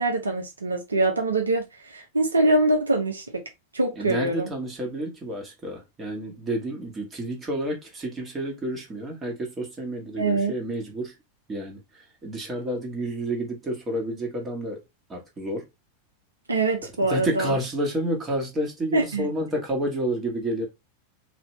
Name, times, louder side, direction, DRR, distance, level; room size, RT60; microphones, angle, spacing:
voice 1, 0.0-3.4 3.7-4.5 10.2-10.5 16.5-17.5 18.9-19.3, right 2 dB, 75° right, 0.9 m, -24 dB
voice 2, 3.9-11.1 11.5-14.8 15.1-15.7 17.1-20.6, right 1 dB, 20° right, 1.7 m, -30 dB
4.2 x 3.0 x 3.3 m
figure-of-eight pair, 90°, 0 cm